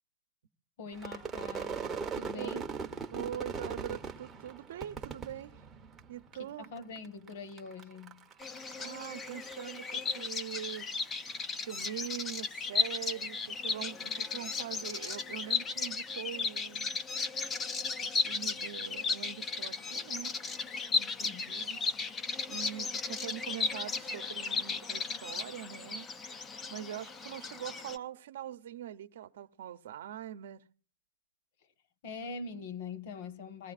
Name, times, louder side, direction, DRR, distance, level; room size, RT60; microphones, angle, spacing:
voice 1, 0.8-1.8 2.2-2.7 6.4-8.2 21.2-21.6 32.0-33.7, left 4 dB, 45° left, 1.3 m, -43 dB
Crowd / Fireworks, 0.9-6.3 6.6-7.3 7.6-11.1, right 5 dB, 10° right, 0.8 m, -40 dB
voice 2, 3.1-5.5 6.1-6.7 8.8-10.9 11.6-16.9 18.0-20.4 21.0-21.8 22.5-26.3 26.7-30.6, right 10 dB, 60° right, 0.8 m, -43 dB
Bird vocalization bird call bird song, 8.4-28.0, left 4 dB, 15° left, 0.5 m, -35 dB
22.0 x 15.0 x 2.5 m
hypercardioid pair, 160°, 0 cm